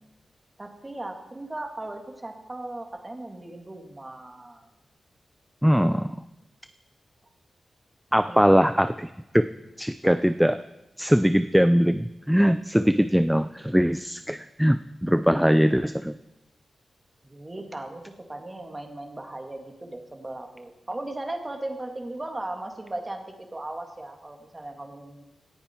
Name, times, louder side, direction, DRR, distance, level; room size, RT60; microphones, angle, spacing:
voice 1, 0.6-4.7 8.3-8.7 17.2-25.2, right 2 dB, 20° right, 3 dB, 2.2 m, -37 dB
voice 2, 5.6-6.2 8.1-9.5 9.8-10.6 11.0-16.2, equal, ahead, 10 dB, 0.4 m, -21 dB
18.5 x 14.5 x 4.5 m, 0.96 s
wide cardioid pair, 145°, 0 cm